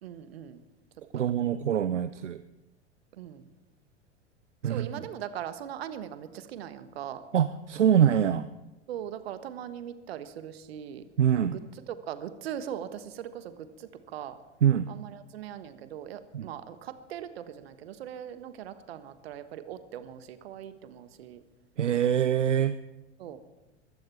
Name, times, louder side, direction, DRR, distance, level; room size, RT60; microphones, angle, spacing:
voice 1, 0.0-0.6 1.1-1.3 3.1-3.5 4.7-7.2 8.9-11.0 11.5-11.6 11.9-14.4 14.9-21.4 23.2-23.4, right 10 dB, 55° right, 12 dB, 1.4 m, -40 dB
voice 2, 1.1-2.4 4.6-4.9 7.3-8.5 11.2-11.6 14.6-14.9 16.3-16.5 21.8-22.8, right 9 dB, 75° right, 13 dB, 0.7 m, -24 dB
22.0 x 14.5 x 4.5 m, 1.1 s
figure-of-eight pair, 90°, 36 cm